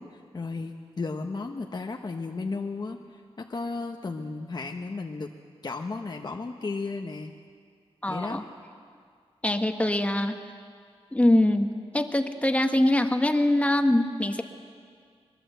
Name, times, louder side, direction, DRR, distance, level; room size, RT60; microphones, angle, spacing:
voice 1, 0.0-5.3 5.6-7.3 8.1-8.4, left 3 dB, 40° left, 2 dB, 1.1 m, -34 dB
voice 2, 8.0-8.4 9.4-10.4 11.1-14.4, left 1 dB, 15° left, 6 dB, 1.4 m, -23 dB
24.0 x 21.5 x 8.0 m, 2.1 s
wide cardioid pair, 135°, 11 cm